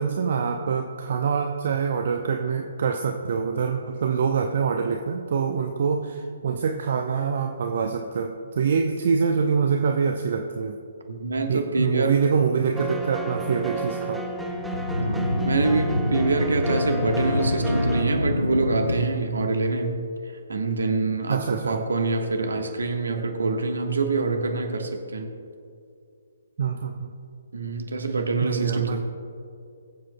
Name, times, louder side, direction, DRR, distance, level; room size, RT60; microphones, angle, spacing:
voice 1, 0.0-10.7 11.5-14.2 21.3-21.8 26.6-27.1 28.4-29.0, right 6 dB, 50° right, 4 dB, 0.6 m, -25 dB
voice 2, 11.1-12.2 15.0-20.0 20.5-25.3 27.5-29.0, right 3 dB, 65° right, 4 dB, 1.3 m, -25 dB
sound 1, 12.8-18.1, right 1 dB, 5° right, 0.6 m, -32 dB
sound 2, 14.1-19.1, left 1 dB, 85° left, 0.6 m, -26 dB
22.0 x 7.5 x 2.2 m, 2.4 s
figure-of-eight pair, 130°, 0 cm